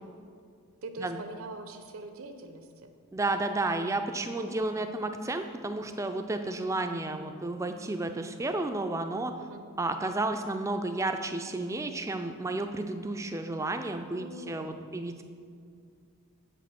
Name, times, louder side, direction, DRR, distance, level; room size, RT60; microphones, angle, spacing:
voice 1, 0.8-2.9 4.4-4.9 9.4-9.6 14.1-14.9, right 2 dB, 70° right, 7 dB, 0.7 m, -44 dB
voice 2, 3.1-9.3 9.8-15.2, right 2 dB, 15° right, 7 dB, 0.3 m, -32 dB
7.6 x 5.1 x 5.8 m, 2.3 s
head